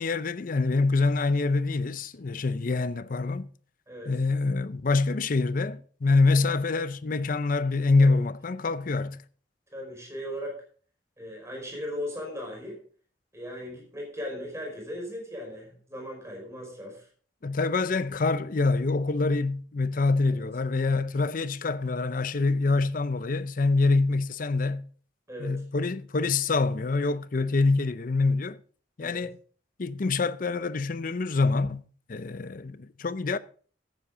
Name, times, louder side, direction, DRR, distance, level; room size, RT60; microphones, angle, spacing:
voice 1, 0.0-3.5 4.1-9.2 17.4-24.9 25.4-28.6 29.0-29.4 29.8-31.8 32.1-33.4, left 3 dB, 50° left, 0.5 m, -25 dB
voice 2, 9.7-10.6 11.2-12.8 13.3-17.0 20.3-20.4 25.3-25.5 29.0-29.2, equal, 15° right, 5.1 m, -37 dB
14.5 x 9.1 x 3.8 m
head